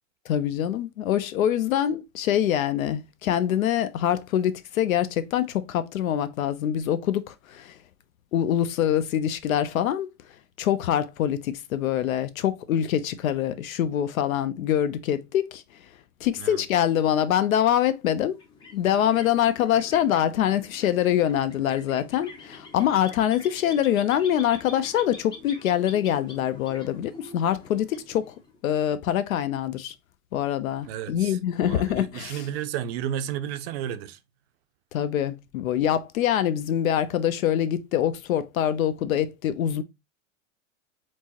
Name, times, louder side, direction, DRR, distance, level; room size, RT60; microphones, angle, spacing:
voice 1, 0.3-7.7 8.3-10.1 10.6-15.6 16.2-18.4 18.7-28.3 28.6-29.9 30.3-32.5 34.9-39.8, left 10 dB, 85° left, 0.6 m, -24 dB
sound 1, 18.3-28.7, left 3 dB, 10° left, 0.5 m, -45 dB
voice 2, 30.8-34.2, right 10 dB, 50° right, 0.5 m, -33 dB
4.5 x 2.0 x 2.8 m
hypercardioid pair, 125°, 40 cm